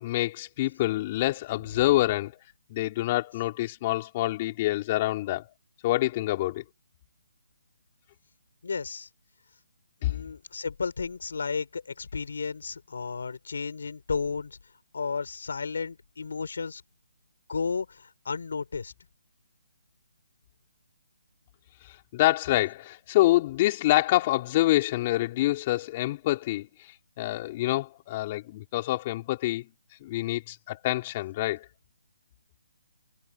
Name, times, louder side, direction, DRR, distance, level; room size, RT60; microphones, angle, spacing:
voice 1, 0.0-2.4 2.7-5.4 5.8-6.6 10.0-10.2 22.1-26.7 27.2-29.7 30.0-31.6, left 16 dB, 25° left, 5.1 m, -26 dB
voice 2, 8.6-9.1 10.0-14.6 14.9-16.8 17.5-18.9, left 5 dB, 70° left, 5.1 m, -33 dB
hypercardioid pair, 165°, 0 cm